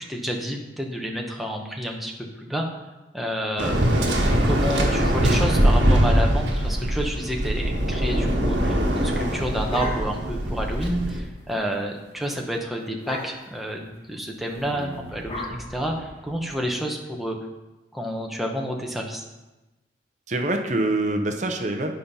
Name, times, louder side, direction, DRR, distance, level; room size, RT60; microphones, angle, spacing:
voice 1, 0.0-2.1 2.4-2.7 3.1-3.9 4.4-17.4 17.9-19.2, equal, ahead, 0 dB, 1.0 m, -29 dB
Waves surf, 3.6-11.2, equal, 65° right, 1.5 m, -22 dB
sound 1, 9.1-10.4 10.8-10.9 11.1-11.4 11.8-12.0 12.3-12.4 13.0-13.6 14.5-16.5, left 1 dB, 30° left, 1.4 m, -37 dB
voice 2, 14.7-15.1 20.3-21.9, right 2 dB, 40° right, 5 dB, 0.7 m, -26 dB
9.4 x 5.2 x 5.5 m, 1.1 s
head